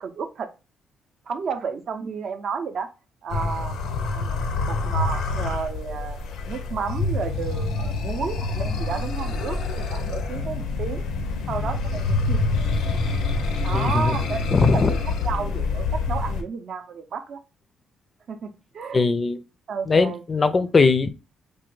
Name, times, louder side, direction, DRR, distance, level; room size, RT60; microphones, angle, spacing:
voice 1, 0.0-0.5 1.3-2.9 3.2-3.8 4.1-11.0 11.5-12.5 13.6-17.4 18.3-19.0 19.7-20.2, right 6 dB, 60° right, 0.4 m, -32 dB
sound 1, 3.3-16.4, left 3 dB, 85° left, 0.5 m, -26 dB
voice 2, 13.7-14.2 14.5-14.9 18.9-19.4 19.9-21.1, left 4 dB, 35° left, 0.3 m, -20 dB
3.3 x 2.2 x 3.1 m
cardioid pair, 90°, 0 cm